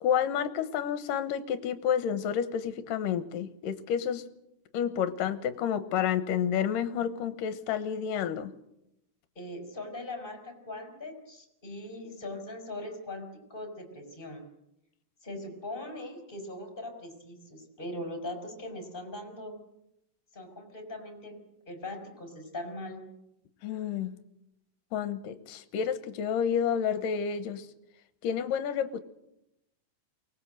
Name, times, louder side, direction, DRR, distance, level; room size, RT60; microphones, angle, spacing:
voice 1, 0.0-4.2 4.7-8.5 23.6-24.1 24.9-27.7 28.2-29.0, left 8 dB, 70° left, 11 dB, 2.6 m, -30 dB
voice 2, 9.3-14.4 15.2-19.5 20.3-21.4 21.7-23.0, left 1 dB, 15° left, 3 dB, 4.3 m, -40 dB
24.0 x 19.0 x 7.8 m, 0.85 s
omnidirectional pair, 4.3 m